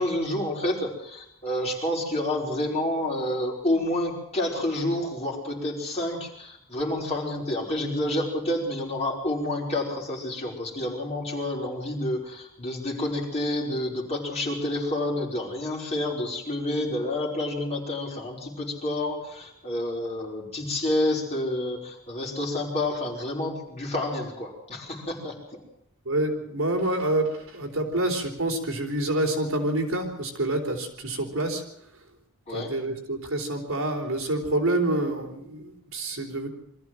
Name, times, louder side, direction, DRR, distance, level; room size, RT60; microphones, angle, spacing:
voice 1, 0.0-25.4 32.5-32.7, left 1 dB, 30° left, -2 dB, 5.2 m, -29 dB
voice 2, 26.1-31.6 32.5-36.5, right 1 dB, 70° right, 2 dB, 4.1 m, -27 dB
23.5 x 14.5 x 7.8 m, 0.75 s
head